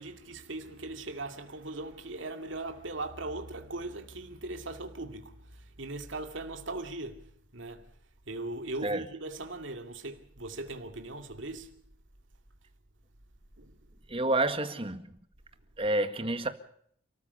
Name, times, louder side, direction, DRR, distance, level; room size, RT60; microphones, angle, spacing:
voice 1, 0.0-7.9 8.3-11.8 13.6-13.8, right 2 dB, 80° right, 2.5 m, -39 dB
voice 2, 14.1-15.1 15.8-16.5, right 2 dB, 30° right, 1.8 m, -29 dB
29.5 x 14.5 x 6.9 m
head